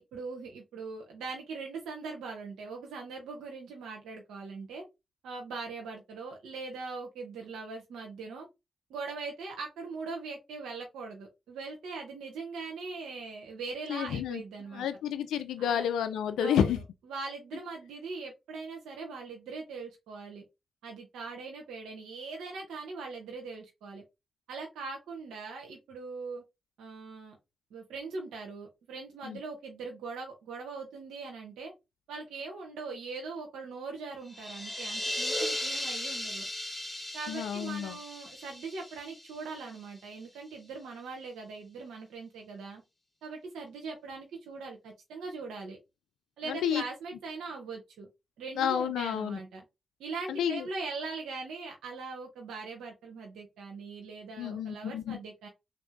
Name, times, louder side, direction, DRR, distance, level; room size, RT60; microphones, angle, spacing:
voice 1, 0.0-4.8 5.2-8.5 8.9-14.9 15.6-15.8 16.4-20.4 20.8-24.0 24.5-26.4 26.8-27.4 27.7-31.7 32.1-36.5 37.1-42.8 43.2-45.8 46.4-48.1 48.4-49.6 50.0-55.5, right 4 dB, 90° right, 0.8 m, -41 dB
voice 2, 13.9-14.4 14.7-16.8 29.2-29.4 37.3-38.0 46.5-46.8 48.6-49.4 50.3-50.6 54.4-55.2, left 9 dB, 85° left, 0.3 m, -30 dB
sound 1, 34.3-39.9, left 1 dB, 15° left, 1.8 m, -36 dB
3.4 x 2.6 x 3.4 m
supercardioid pair, 45°, 0 cm